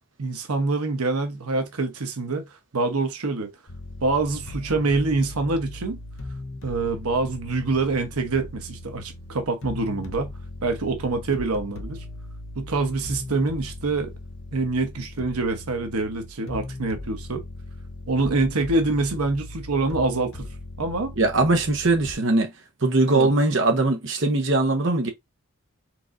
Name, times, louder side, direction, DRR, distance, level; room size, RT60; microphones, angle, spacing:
voice 1, 0.2-2.4 2.7-3.5 4.0-6.0 6.6-10.3 10.6-12.0 12.6-14.1 14.5-17.4 18.1-20.5 20.8-21.1 23.1-23.3, right 3 dB, 90° right, 1.0 m, -25 dB
sound 1, 3.7-22.1, left 2 dB, 60° left, 0.8 m, -38 dB
voice 2, 21.2-22.5 22.8-25.1, right 2 dB, 55° right, 0.9 m, -21 dB
4.6 x 3.6 x 2.6 m
head